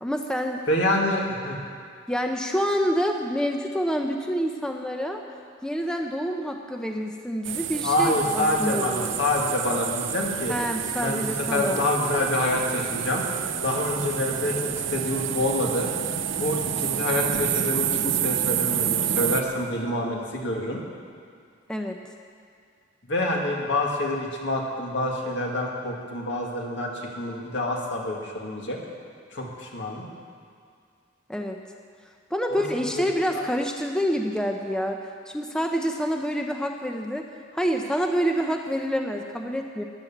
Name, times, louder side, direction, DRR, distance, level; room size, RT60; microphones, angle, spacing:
voice 1, 0.0-0.6 2.1-5.2 5.6-9.1 10.5-11.9 21.7-22.0 31.3-31.6 32.3-35.0 35.3-37.3 37.5-39.8, equal, 5° left, 3 dB, 0.7 m, -27 dB
voice 2, 0.7-1.6 7.8-10.5 11.0-13.2 13.6-15.9 16.4-20.8 23.1-28.8 29.3-30.0 32.5-32.6 32.9-33.0 33.3-33.4, left 1 dB, 65° left, -1 dB, 2.2 m, -27 dB
sound 1, 7.4-19.4, right 9 dB, 70° right, 0.8 m, -28 dB
14.5 x 10.5 x 7.3 m, 2.2 s
head